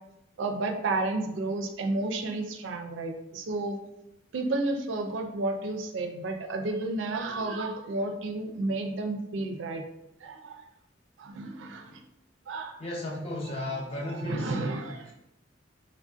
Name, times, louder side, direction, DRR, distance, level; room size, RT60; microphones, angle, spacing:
voice 1, 0.4-3.8 4.3-9.8 10.2-10.6 11.2-12.0 12.5-12.8 13.6-13.7 14.0-15.1, right 2 dB, 85° right, 4 dB, 0.4 m, -31 dB
voice 2, 12.8-14.6 15.1-15.2, left 2 dB, 35° left, -2 dB, 0.7 m, -35 dB
3.2 x 2.5 x 2.4 m, 0.85 s
head